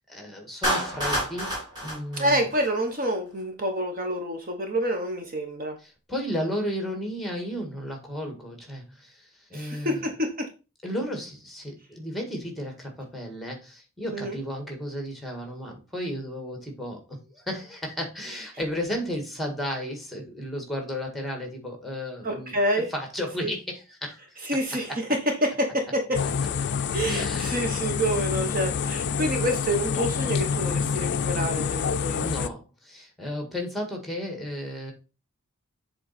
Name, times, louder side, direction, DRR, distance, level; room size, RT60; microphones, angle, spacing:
voice 1, 0.0-2.5 5.8-10.1 10.8-24.2 24.9-25.0 27.0-27.6 32.1-34.9, equal, ahead, 3 dB, 1.7 m, -34 dB
Clapping, 0.6-3.0, equal, 20° right, 4.2 m, -29 dB
voice 2, 2.2-5.8 9.5-10.5 14.1-14.4 22.2-22.9 23.4-23.5 24.4-26.2 26.9-32.5, equal, 40° right, 4 dB, 1.0 m, -28 dB
sound 1, 26.1-32.5, left 6 dB, 50° left, 0.4 m, -27 dB
7.4 x 3.9 x 4.2 m, 0.31 s
head